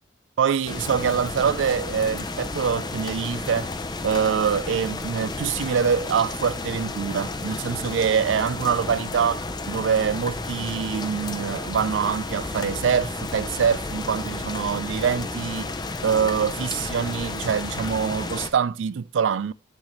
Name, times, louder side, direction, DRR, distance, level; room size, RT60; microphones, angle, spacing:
voice 1, 0.4-3.7 4.0-15.7 16.0-19.5, right 7 dB, 70° right, 0.4 m, -24 dB
sound 1, 0.7-18.5, left 2 dB, 20° left, 0.6 m, -32 dB
11.5 x 4.0 x 3.1 m
head